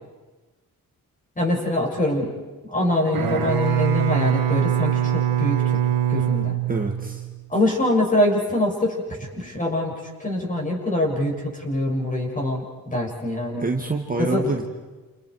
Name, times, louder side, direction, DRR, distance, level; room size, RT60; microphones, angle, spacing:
voice 1, 1.4-2.3 2.7-5.6 6.1-6.6 7.5-9.0 9.4-9.9 10.2-13.6 14.2-14.4, left 1 dB, 20° left, -1 dB, 7.0 m, -24 dB
Bowed string instrument, 3.1-7.4, right 11 dB, 65° right, 2.1 m, -23 dB
voice 2, 6.7-7.2 13.6-14.7, right 3 dB, 25° right, 1 dB, 1.8 m, -26 dB
29.5 x 29.5 x 4.9 m, 1.3 s
cardioid pair, 120°, 36 cm